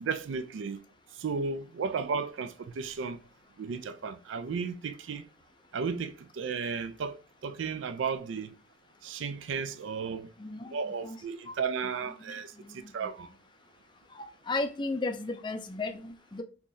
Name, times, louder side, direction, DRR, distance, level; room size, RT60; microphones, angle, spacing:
voice 1, 0.0-0.8 1.2-3.2 3.6-5.2 5.7-8.5 9.0-10.3 10.7-13.3, right 5 dB, 85° right, 0.4 m, -34 dB
voice 2, 10.4-11.2 11.5-11.9 12.3-13.1 14.5-16.4, left 3 dB, 25° left, 0.4 m, -35 dB
3.8 x 2.9 x 2.6 m
head